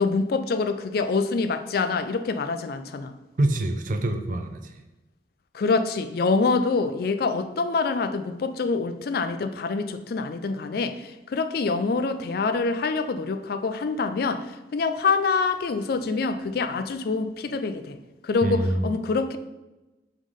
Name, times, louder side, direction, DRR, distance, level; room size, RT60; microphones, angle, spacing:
voice 1, 0.0-3.2 5.5-18.0 18.2-19.4, left 4 dB, 55° left, 9 dB, 0.4 m, -26 dB
voice 2, 3.4-4.8 18.4-19.0, right 1 dB, 50° right, 6 dB, 0.5 m, -26 dB
5.2 x 3.7 x 4.9 m, 1.0 s
head